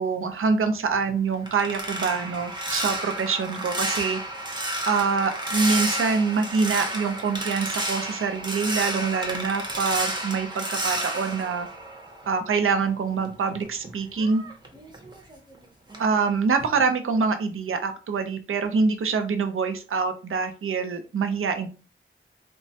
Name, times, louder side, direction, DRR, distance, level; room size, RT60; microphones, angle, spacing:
voice 1, 0.0-4.2 4.9-11.7 12.3-14.4 16.0-21.7, right 5 dB, 80° right, 7 dB, 0.5 m, -25 dB
sound 1, 0.9-12.6 12.9-15.6 15.9-16.2 16.6-16.8, right 1 dB, 20° right, 0.6 m, -31 dB
3.0 x 2.2 x 2.7 m, 0.35 s
wide cardioid pair, 90°, 21 cm